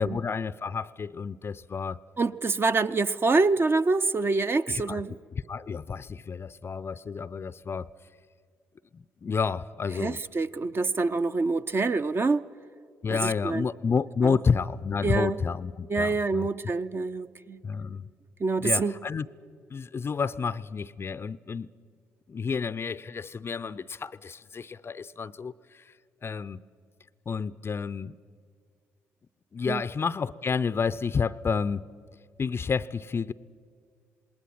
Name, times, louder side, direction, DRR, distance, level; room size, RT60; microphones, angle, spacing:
voice 1, 0.0-2.0 4.7-5.0 5.3-7.9 8.9-10.2 13.0-16.5 17.6-18.1 18.6-19.3 19.7-21.7 22.3-25.9 26.2-26.6 27.3-28.2 29.5-31.8 32.4-33.3, left 5 dB, 35° left, 0.5 m, -30 dB
voice 2, 2.2-5.1 10.0-12.4 13.1-13.7 14.2-14.4 15.0-15.4 15.9-17.6 18.4-18.9 29.7-29.8, right 3 dB, 30° right, 0.7 m, -26 dB
27.5 x 20.0 x 6.0 m
figure-of-eight pair, 45°, 7 cm